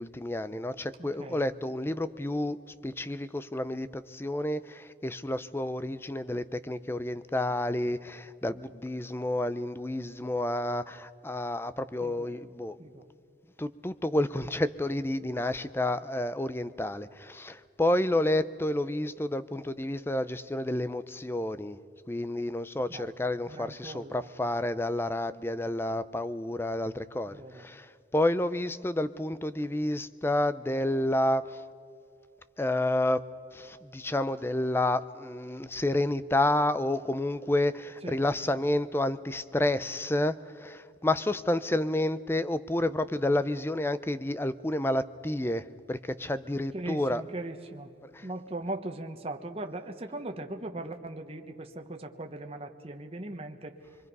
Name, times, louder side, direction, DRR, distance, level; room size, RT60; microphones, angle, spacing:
voice 1, 0.0-2.6 2.8-12.8 13.6-21.8 22.1-31.6 32.6-33.2 33.5-47.2 48.0-48.3, left 1 dB, 10° left, 14 dB, 0.5 m, -30 dB
voice 2, 1.0-1.4 12.0-12.3 12.8-13.0 22.9-23.1 23.5-24.3 27.3-27.6 38.0-38.2 38.5-38.6 46.7-47.9 48.2-53.8, right 2 dB, 30° right, 4 dB, 1.1 m, -39 dB
27.0 x 23.0 x 5.4 m, 2.4 s
head